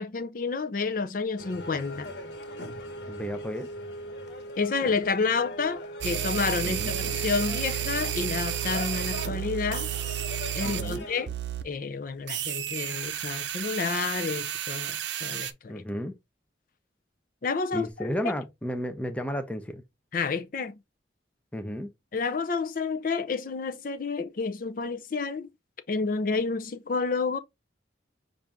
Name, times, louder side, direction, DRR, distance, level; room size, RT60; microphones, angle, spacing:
voice 1, 0.0-2.1 4.6-9.9 10.5-11.3 11.6-15.8 17.4-18.1 20.1-20.7 22.1-25.5 25.9-27.4, left 4 dB, 45° left, 0.5 m, -30 dB
sound 1, 1.4-11.3, equal, 65° left, 1.3 m, -39 dB
voice 2, 3.1-3.7 6.6-7.0 10.6-11.1 15.7-16.2 17.7-19.8 21.5-21.9, equal, 5° left, 0.6 m, -33 dB
sound 2, 6.0-11.0 11.3-11.6 12.3-15.5, right 11 dB, 75° right, 0.6 m, -32 dB
5.9 x 2.6 x 3.4 m
head